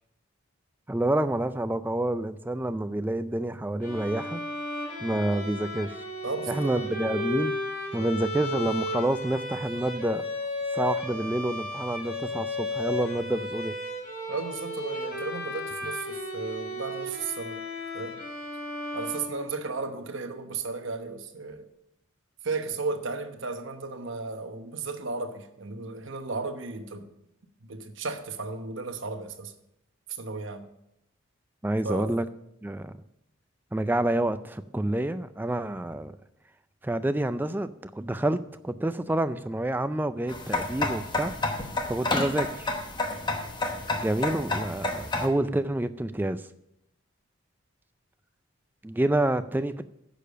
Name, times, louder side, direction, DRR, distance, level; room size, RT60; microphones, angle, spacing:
voice 1, 0.9-4.4 5.0-6.0 6.5-7.5 7.9-10.2 10.7-13.8 31.6-32.3 32.6-33.0 33.7-36.1 36.8-38.4 38.6-41.3 41.9-42.7 44.0-46.4 48.8-49.8, right 1 dB, 10° right, 0.3 m, -28 dB
Bowed string instrument, 3.8-19.9, left 1 dB, 40° left, 4.2 m, -34 dB
voice 2, 6.2-6.9 14.3-17.6 17.9-18.2 18.9-21.7 22.4-27.1 27.6-29.5 30.1-30.7 31.8-32.1, right 4 dB, 65° right, 1.0 m, -34 dB
sound 1, 40.3-45.3, left 2 dB, 20° left, 1.0 m, -30 dB
10.0 x 6.7 x 6.6 m
head